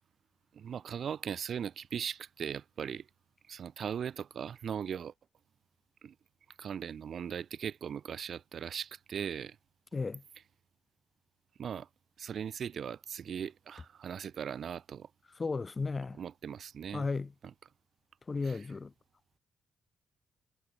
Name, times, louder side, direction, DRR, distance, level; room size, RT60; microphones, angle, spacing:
voice 1, 0.5-3.1 3.5-5.1 6.0-6.1 6.6-9.6 11.6-11.9 12.2-15.1 16.2-17.1 18.4-18.7, right 8 dB, 55° right, 1.0 m, -39 dB
voice 2, 9.9-10.2 15.4-16.2 16.9-17.3 18.3-18.9, left 4 dB, 25° left, 2.4 m, -34 dB
cardioid pair, 130°, 0 cm